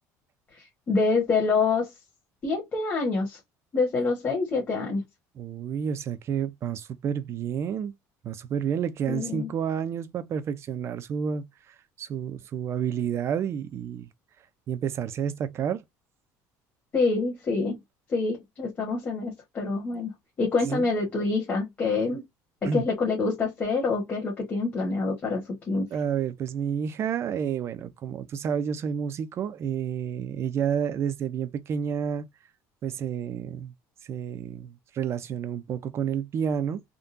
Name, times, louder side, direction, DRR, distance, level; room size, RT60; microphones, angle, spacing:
voice 1, 0.5-1.9 2.4-3.4 3.7-5.0 9.1-9.5 16.9-17.8 18.1-22.2 22.7-25.9, left 4 dB, 25° left, 1.3 m, -26 dB
voice 2, 5.4-7.9 8.2-14.1 14.7-15.8 19.9-20.0 20.6-20.9 22.6-22.8 25.9-32.3 32.8-33.7 34.0-36.8, right 8 dB, 40° right, 0.5 m, -30 dB
3.7 x 2.2 x 2.6 m
cardioid pair, 145°, 7 cm